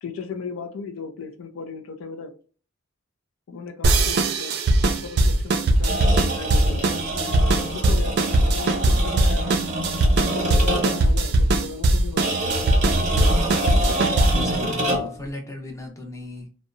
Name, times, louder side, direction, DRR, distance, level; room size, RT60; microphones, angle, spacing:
voice 1, 0.0-2.3 3.5-4.6 4.8-7.0 7.5-9.6 10.0-12.4, left 5 dB, 70° left, 6 dB, 0.4 m, -36 dB
sound 1, 3.8-14.5, right 2 dB, 50° right, 0.4 m, -20 dB
sound 2, 5.8-11.1 12.2-15.2, right 1 dB, 35° right, 0.9 m, -26 dB
voice 2, 14.1-16.5, left 1 dB, 15° left, 1 dB, 0.6 m, -36 dB
2.7 x 2.0 x 2.5 m, 0.39 s
head